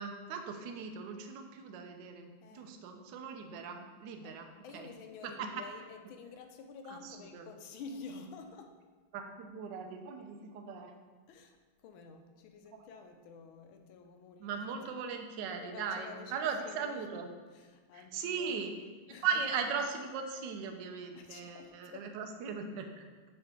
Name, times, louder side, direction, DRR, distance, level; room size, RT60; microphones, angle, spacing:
voice 1, 0.0-4.5 4.7-4.9 5.2-5.5 6.9-7.5 9.1-11.0 14.4-17.3 17.9-18.7 19.2-23.0, right 6 dB, 70° right, 5 dB, 1.1 m, -38 dB
voice 2, 2.4-2.7 4.2-8.8 11.3-11.6 11.8-14.8 15.6-17.0 17.5-18.6 19.1-19.3 21.1-22.2, left 4 dB, 75° left, 6 dB, 1.3 m, -50 dB
6.4 x 4.8 x 3.7 m, 1.4 s
omnidirectional pair, 2.4 m